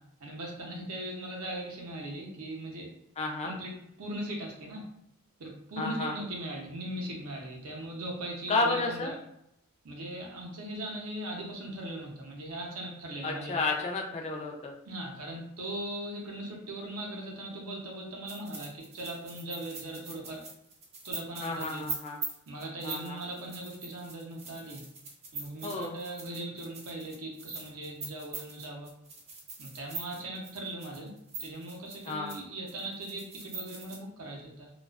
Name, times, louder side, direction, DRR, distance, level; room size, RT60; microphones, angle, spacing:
voice 1, 0.2-3.0 3.4-4.9 5.4-9.1 9.8-13.6 14.8-20.4 21.0-21.8 22.5-24.8 25.3-28.9 29.6-31.1 31.4-34.7, right 1 dB, 75° right, 0 dB, 0.6 m, -39 dB
voice 2, 3.2-3.5 5.8-6.1 8.5-9.1 13.2-14.7 21.4-22.2 22.8-23.2 25.6-26.0 32.1-32.4, left 3 dB, 30° left, 1 dB, 0.3 m, -31 dB
sound 1, 18.3-32.4 32.7-34.0, right 3 dB, 30° right, 0.5 m, -42 dB
2.3 x 2.3 x 2.3 m, 0.80 s
head